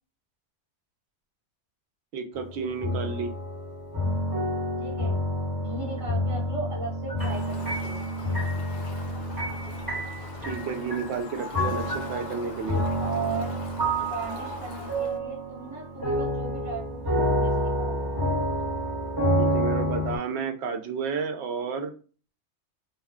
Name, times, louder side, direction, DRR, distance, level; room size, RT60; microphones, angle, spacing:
voice 1, 2.1-3.3 10.4-12.8 19.3-21.9, right 5 dB, 70° right, 6 dB, 0.8 m, -31 dB
sound 1, 2.4-20.2, equal, 20° right, 1.1 m, -29 dB
voice 2, 4.8-5.2 5.5-8.1 13.0-13.6 14.0-18.1, right 4 dB, 50° right, -3 dB, 1.1 m, -37 dB
Fowl, 7.2-15.2, left 2 dB, 45° left, 0.6 m, -42 dB
2.4 x 2.2 x 3.5 m, 0.37 s
omnidirectional pair, 1.2 m